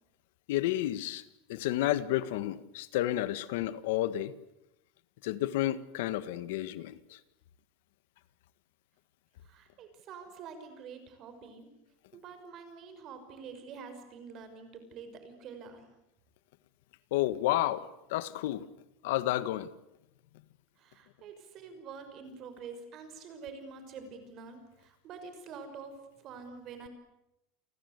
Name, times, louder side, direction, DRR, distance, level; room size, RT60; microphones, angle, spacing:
voice 1, 0.5-1.2 1.5-4.3 5.2-7.2 17.1-18.6 19.0-19.7, left 14 dB, 70° left, 14 dB, 1.6 m, -31 dB
voice 2, 9.4-11.7 12.1-15.9 20.8-26.9, right 5 dB, 35° right, 8 dB, 6.0 m, -47 dB
29.5 x 24.0 x 8.2 m, 0.88 s
supercardioid pair, 165°, 0 cm